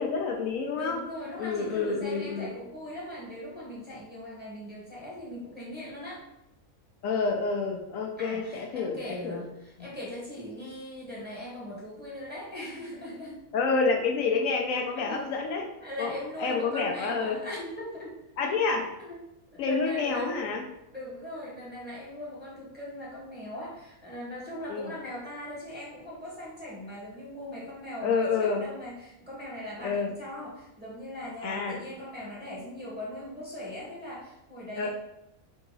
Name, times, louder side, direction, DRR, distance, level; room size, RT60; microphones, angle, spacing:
voice 1, 0.0-1.0 1.4-2.5 7.0-9.4 13.5-15.6 16.0-17.4 18.4-18.8 19.6-20.6 24.7-24.9 28.0-28.6 29.8-30.1 31.4-31.8 34.8-34.9, left 4 dB, 70° left, 1 dB, 0.9 m, -28 dB
voice 2, 0.7-6.3 8.2-13.4 14.9-15.3 15.8-18.1 18.4-18.6 19.0-19.2 19.5-20.4 20.9-34.9, left 1 dB, 10° right, -6 dB, 1.1 m, -40 dB
3.9 x 2.8 x 3.8 m, 0.87 s
omnidirectional pair, 1.5 m